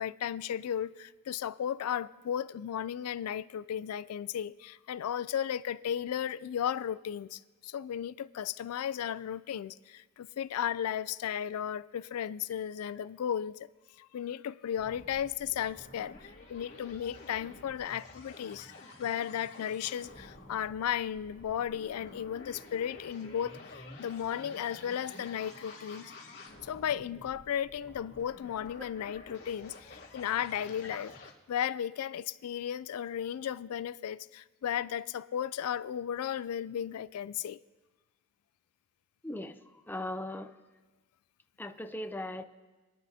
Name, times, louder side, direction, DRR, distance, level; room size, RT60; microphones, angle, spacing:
voice 1, 0.0-13.7 14.0-18.7 19.0-26.1 26.6-31.1 31.5-37.6, left 9 dB, 85° left, 0.3 m, -35 dB
sound 1, 14.8-31.3, left 2 dB, 50° left, 2.6 m, -50 dB
voice 2, 39.2-40.5 41.6-42.4, left 1 dB, 10° left, 0.5 m, -39 dB
27.0 x 10.5 x 2.7 m
head